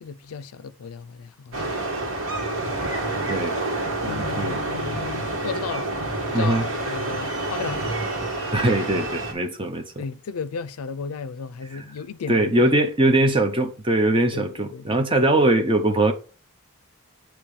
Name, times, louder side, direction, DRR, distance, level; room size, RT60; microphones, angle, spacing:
voice 1, 0.0-1.7 4.0-5.9 6.3-7.8 10.0-12.8 14.3-15.1, left 5 dB, 85° left, 0.4 m, -34 dB
sound 1, 1.5-9.3, right 2 dB, 65° right, 1.8 m, -28 dB
voice 2, 4.0-4.6 6.3-6.7 8.5-10.0 11.7-11.8 12.3-16.1, right 1 dB, 25° right, 0.7 m, -21 dB
8.6 x 3.0 x 4.9 m
head